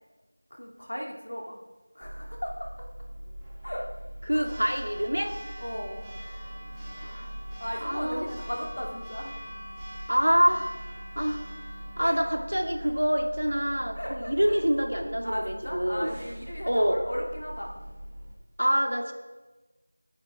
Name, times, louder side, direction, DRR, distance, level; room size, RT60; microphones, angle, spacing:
voice 1, 0.5-1.6 1.9-2.7 3.6-3.9 4.3-4.6 5.6-6.0 7.6-9.3 12.0-12.3 13.9-14.6 15.2-17.7, equal, 50° left, 0 dB, 2.4 m, -36 dB
Church bell, 2.0-18.3, equal, ahead, 0.5 m, -41 dB
voice 2, 4.3-5.3 7.0-7.3 7.8-8.3 10.1-10.7 11.2-11.4 12.0-16.1 16.7-17.0 18.6-19.1, equal, 75° right, 4 dB, 2.0 m, -26 dB
25.0 x 9.9 x 3.5 m, 1.2 s
figure-of-eight pair, 180°, 0 cm